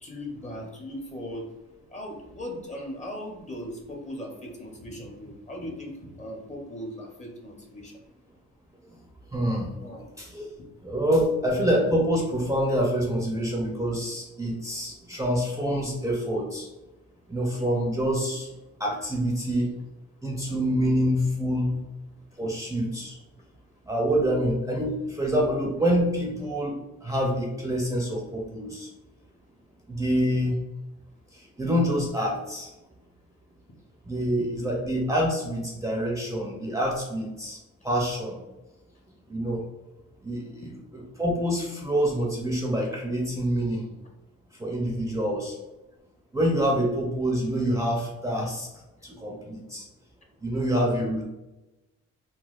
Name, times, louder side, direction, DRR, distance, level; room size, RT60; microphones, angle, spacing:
voice 1, 0.0-1.5 1.9-8.0 9.8-10.1 10.8-10.9 17.5-17.7 22.4-22.5 40.6-40.8 45.0-45.2, equal, 25° left, 0 dB, 0.8 m, -39 dB
voice 2, 9.3-9.7 10.2-10.5 10.8-16.7 17.3-18.5 18.8-19.7 20.2-21.8 22.4-23.2 23.9-26.8 27.0-28.9 29.9-30.5 31.6-32.7 34.1-37.6 37.8-38.4 39.3-39.6 40.2-40.6 41.2-43.9 44.6-45.5 46.3-48.7 49.0-49.8 50.4-51.3, equal, 10° right, -2 dB, 0.6 m, -26 dB
4.0 x 2.2 x 2.4 m, 1.0 s
cardioid pair, 90°, 30 cm